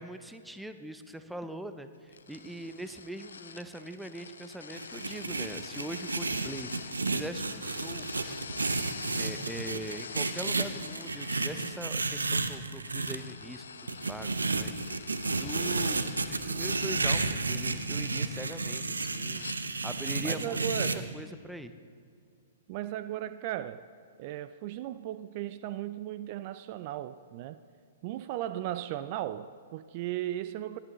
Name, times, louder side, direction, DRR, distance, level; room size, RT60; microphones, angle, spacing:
voice 1, 0.0-8.4 9.1-14.8 15.3-21.7, right 1 dB, 5° right, 0.6 m, -42 dB
sound 1, 2.1-19.6, left 5 dB, 80° left, 0.7 m, -46 dB
sound 2, 4.7-13.2 13.9-21.0, right 3 dB, 90° right, 0.6 m, -32 dB
voice 2, 20.2-21.2 22.7-23.9 24.2-27.6 28.0-30.8, right 12 dB, 45° right, 0.3 m, -36 dB
18.0 x 11.5 x 3.1 m
hypercardioid pair, 115°, 0 cm